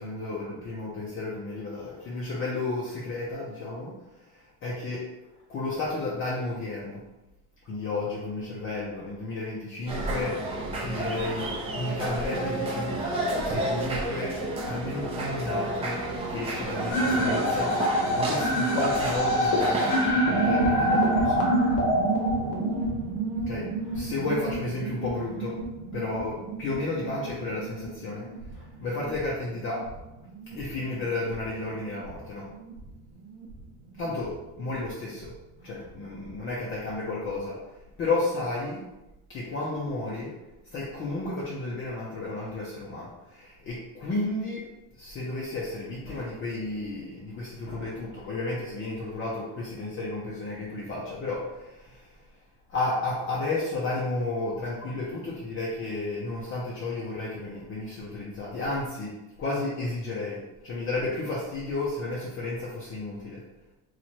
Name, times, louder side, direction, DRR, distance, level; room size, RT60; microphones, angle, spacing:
voice 1, 0.0-5.1 5.5-7.0 7.6-10.5 10.8-13.0 13.4-16.0 16.3-17.8 18.1-21.5 23.4-25.6 25.9-29.9 30.5-32.5 34.0-35.3 35.6-37.6 38.0-38.9 39.3-44.7 44.9-52.2 52.7-63.4, left 2 dB, 30° left, -5 dB, 0.6 m, -32 dB
sound 1, 9.9-20.1, right 1 dB, 15° right, 0.6 m, -31 dB
sound 2, 16.9-22.9, equal, 50° left, 0.9 m, -25 dB
sound 3, 20.1-36.4 36.6-36.7 36.9-37.4, right 3 dB, 60° right, 0.8 m, -33 dB
3.0 x 2.5 x 4.3 m, 0.97 s
cardioid pair, 160°, 41 cm